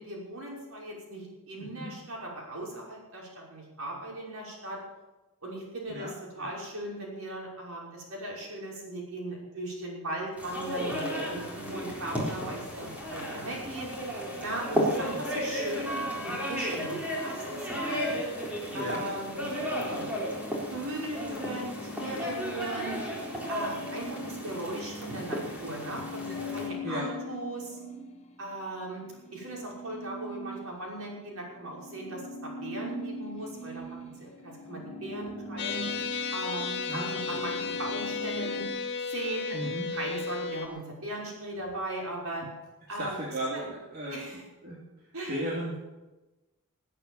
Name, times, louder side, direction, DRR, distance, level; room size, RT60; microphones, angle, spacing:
voice 1, 0.0-4.8 5.4-13.9 14.4-18.1 18.7-19.4 19.9-20.1 20.7-23.0 23.5-27.8 28.4-29.0 29.3-35.8 36.3-38.6 39.1-39.6 39.9-42.5 42.9-43.2 43.5-43.6 44.1-44.4 45.1-45.3, right 1 dB, 65° right, -2 dB, 5.8 m, -38 dB
voice 2, 1.6-1.9 5.9-6.5 14.7-14.8 18.7-19.0 19.7-20.1 26.8-27.1 36.9-37.4 39.5-39.9 43.0-45.7, right 1 dB, 45° right, -5 dB, 3.1 m, -36 dB
sound 1, 10.4-26.7, equal, 5° right, 3.9 m, -34 dB
sound 2, 19.7-28.5 28.9-38.7, left 1 dB, 30° left, 1.4 m, -42 dB
sound 3, 35.6-40.7, left 5 dB, 55° left, 2.6 m, -34 dB
19.0 x 8.8 x 7.3 m, 1.1 s
head